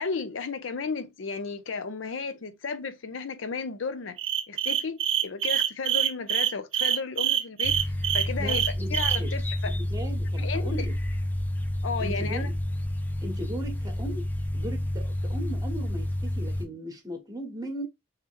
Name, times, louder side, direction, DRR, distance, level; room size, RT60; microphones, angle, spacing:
voice 1, 0.0-4.2 4.5-7.8 8.1-8.6 8.9-9.8 10.4-10.9 11.8-12.5, left 4 dB, 80° left, 0.6 m, -33 dB
sound 1, 4.2-9.2, right 11 dB, 75° right, 0.6 m, -25 dB
sound 2, 7.6-16.7, left 1 dB, 10° left, 0.5 m, -30 dB
voice 2, 8.4-9.3 9.7-10.9 12.0-12.5 13.2-14.3 14.5-17.9, right 1 dB, 20° right, 1.1 m, -38 dB
3.2 x 2.9 x 3.6 m
head